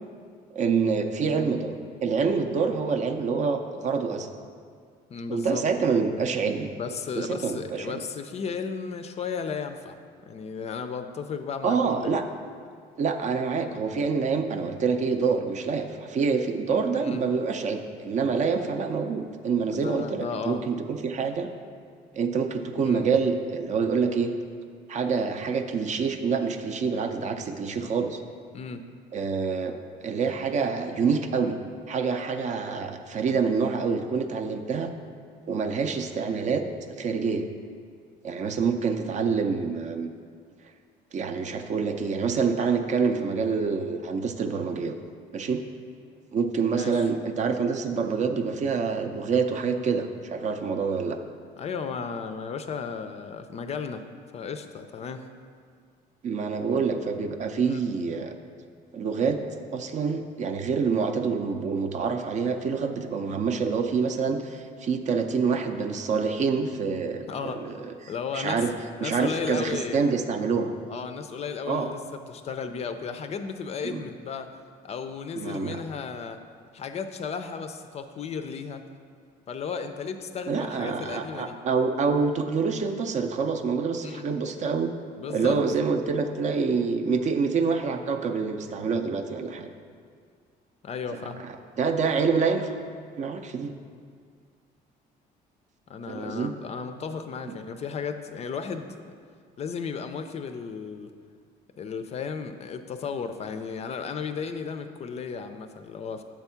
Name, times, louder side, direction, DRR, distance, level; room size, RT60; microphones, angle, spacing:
voice 1, 0.5-4.3 5.3-6.7 7.2-8.0 11.6-12.2 13.0-21.5 22.1-24.3 24.9-28.2 29.1-29.7 30.0-31.6 31.9-34.9 35.5-36.6 37.0-37.5 38.2-40.1 41.1-45.0 45.3-45.6 46.3-51.2 56.2-58.3 58.9-59.4 59.7-68.7 69.0-70.7 71.7-71.9 73.8-74.0 75.3-75.8 80.5-84.9 85.3-89.7 91.4-92.7 93.2-93.7 96.1-96.5 97.4-97.5, right 5 dB, 45° right, 6 dB, 0.5 m, -26 dB
voice 2, 1.2-1.6 5.1-5.6 6.8-10.0 10.3-12.2 13.5-13.8 17.0-17.2 19.7-20.6 22.8-23.1 28.5-28.8 46.8-47.0 51.6-54.0 54.3-55.2 57.6-57.8 67.3-68.6 69.0-70.1 70.9-74.5 74.8-76.4 76.7-78.8 79.5-81.6 84.0-84.2 85.2-85.6 90.8-91.4 95.9-99.1 99.6-101.1 101.8-106.2, left 6 dB, 40° left, 8 dB, 0.4 m, -34 dB
7.3 x 3.5 x 5.6 m, 2.1 s
cardioid pair, 110°, 17 cm